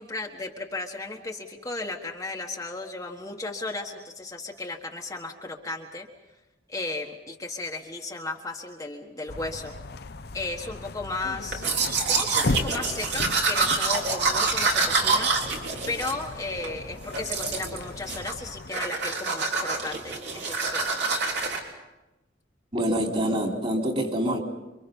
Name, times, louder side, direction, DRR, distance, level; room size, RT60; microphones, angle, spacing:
voice 1, 0.0-6.1 6.7-9.7 10.3-15.3 15.9-21.2, left 2 dB, 20° left, 0 dB, 1.5 m, -35 dB
sound 1, 9.3-18.7, left 2 dB, 60° left, 0.8 m, -36 dB
Domestic sounds home sounds, 11.5-16.7 17.1-17.8 18.1-18.4 18.7-21.6, right 4 dB, 65° right, 3.7 m, -26 dB
voice 2, 22.7-24.4, right 1 dB, 35° right, 1 dB, 3.7 m, -26 dB
28.5 x 24.5 x 5.4 m, 1.0 s
head